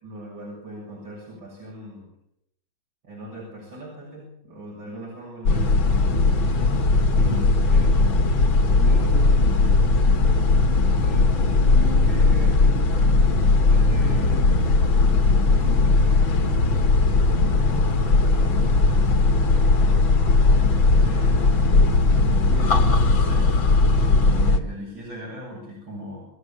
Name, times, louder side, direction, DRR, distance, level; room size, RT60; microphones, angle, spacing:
voice 1, 0.0-2.1 3.0-6.2 7.1-8.0 8.7-9.4 10.8-12.8 13.5-14.8 15.4-16.8 17.4-20.0 20.9-21.4 22.4-26.3, equal, 80° right, -4 dB, 8.0 m, -39 dB
sound 1, 5.5-24.6, left 3 dB, 90° left, 2.8 m, -18 dB
28.5 x 12.5 x 8.6 m, 0.77 s
omnidirectional pair, 2.1 m